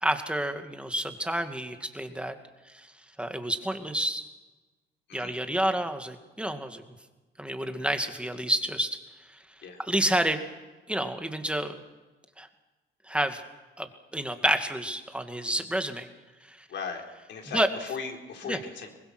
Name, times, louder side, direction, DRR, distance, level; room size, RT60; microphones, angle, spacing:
voice 1, 0.0-2.3 2.7-2.9 3.2-4.2 5.1-6.8 7.4-9.0 9.3-9.4 9.8-10.4 10.9-11.8 12.4-12.5 13.0-13.4 13.8-16.1 16.4-16.7 17.5-17.7 18.5-18.6, right 1 dB, 5° right, 7 dB, 2.3 m, -29 dB
voice 2, 16.7-17.0 17.3-18.9, left 5 dB, 65° left, 2 dB, 4.2 m, -37 dB
24.0 x 20.0 x 6.2 m, 1.2 s
cardioid pair, 90°, 20 cm